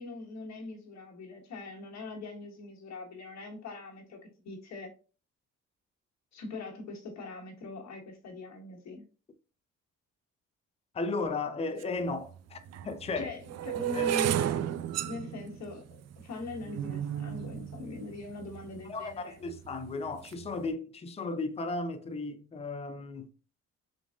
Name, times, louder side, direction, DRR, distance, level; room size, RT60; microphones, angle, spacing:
voice 1, 0.0-4.2 4.4-4.9 6.3-9.0 13.1-14.7 15.0-19.4, left 3 dB, 65° left, 1.4 m, -42 dB
voice 2, 10.9-13.3 13.9-14.1 18.8-23.3, left 3 dB, 20° left, 0.5 m, -35 dB
sound 1, 11.8-11.9 12.7-18.8 19.5-19.8 20.1-20.5, right 11 dB, 60° right, 0.4 m, -33 dB
3.8 x 3.6 x 2.4 m
cardioid pair, 90°, 30 cm